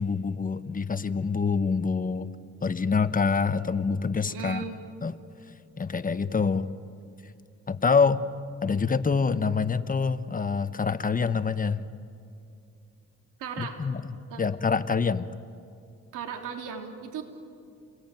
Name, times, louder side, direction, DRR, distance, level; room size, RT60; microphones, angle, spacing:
voice 1, 0.0-2.3 2.6-4.6 5.0-5.1 5.8-6.7 7.7-8.2 8.6-11.8 13.6-14.1 14.4-15.4, left 5 dB, 30° left, 12 dB, 1.0 m, -26 dB
voice 2, 4.3-4.8 13.4-13.8 14.3-14.4 16.1-17.2, right 7 dB, 90° right, 4 dB, 3.4 m, -36 dB
29.0 x 20.5 x 9.2 m, 2.5 s
cardioid pair, 90°, 30 cm